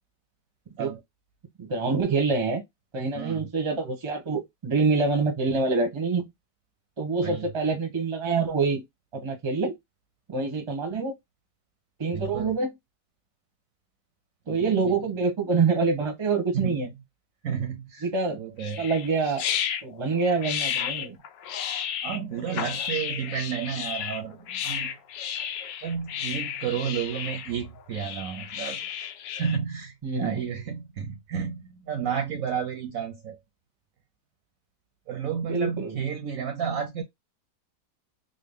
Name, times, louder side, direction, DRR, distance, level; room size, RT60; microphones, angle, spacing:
voice 1, 1.6-2.6 2.9-6.3 7.0-8.8 9.1-9.7 10.3-11.1 12.0-12.8 14.5-16.9 18.0-18.4 18.8-19.4 19.8-21.2 30.0-30.4 35.5-36.0, right 4 dB, 30° right, 0.6 m, -26 dB
voice 2, 12.1-12.5 14.5-14.9 16.5-16.8 17.4-18.1 18.3-18.9 22.0-24.9 25.8-28.8 29.3-33.4 35.1-37.0, right 7 dB, 65° right, 0.9 m, -32 dB
sound 1, 18.6-29.6, left 9 dB, 85° left, 1.3 m, -33 dB
3.8 x 2.1 x 3.5 m
omnidirectional pair, 1.8 m